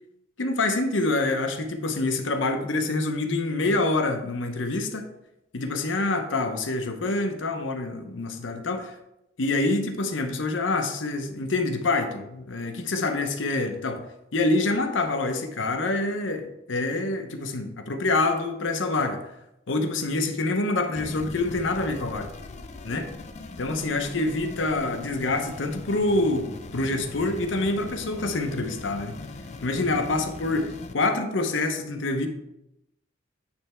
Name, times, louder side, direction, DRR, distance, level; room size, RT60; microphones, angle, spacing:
voice 1, 0.4-5.1 5.5-9.0 9.4-14.0 14.3-19.2 19.7-22.3 22.8-23.1 23.6-29.2 29.6-32.3, left 2 dB, 75° left, 5 dB, 0.8 m, -26 dB
sound 1, 21.0-30.9, left 2 dB, 35° left, 0.4 m, -40 dB
8.6 x 3.2 x 4.4 m, 0.86 s
head